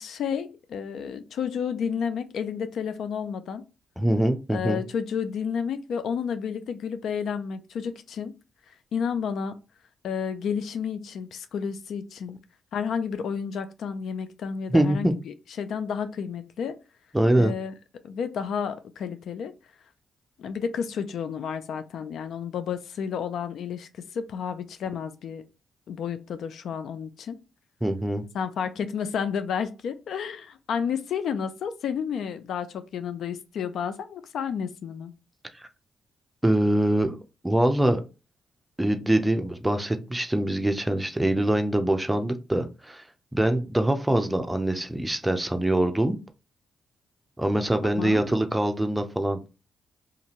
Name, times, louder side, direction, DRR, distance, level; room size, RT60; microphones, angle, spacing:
voice 1, 0.0-3.6 4.5-8.3 8.9-9.6 10.0-12.4 12.7-16.8 17.4-17.7 18.0-19.5 20.4-23.9 24.1-25.5 25.9-27.4 28.3-35.1 48.0-48.3, left 7 dB, 75° left, 0.3 m, -31 dB
voice 2, 4.0-4.8 14.7-15.1 17.1-17.5 27.8-28.2 36.4-37.1 37.4-38.0 38.8-43.0 43.3-46.2 47.4-49.4, right 1 dB, 10° right, 0.6 m, -24 dB
2.6 x 2.4 x 3.0 m
supercardioid pair, 55°, 0 cm